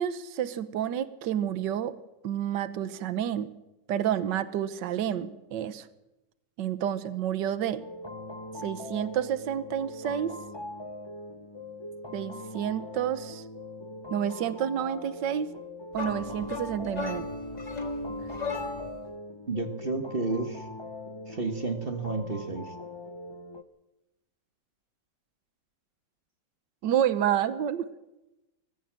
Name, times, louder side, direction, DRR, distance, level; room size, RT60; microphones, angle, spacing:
voice 1, 0.0-2.0 2.2-3.5 3.9-5.9 6.6-7.8 8.6-10.3 12.1-13.4 14.1-15.5 15.9-17.3 26.8-27.9, right 10 dB, 70° right, 13 dB, 1.6 m, -29 dB
sound 1, 7.8-23.6, left 2 dB, 45° left, 0.3 m, -41 dB
sound 2, 15.9-19.1, left 3 dB, 20° left, 2.1 m, -36 dB
voice 2, 19.5-20.7 21.3-22.7, right 3 dB, 30° right, 6 dB, 1.6 m, -31 dB
22.5 x 15.5 x 7.6 m, 0.96 s
omnidirectional pair, 2.1 m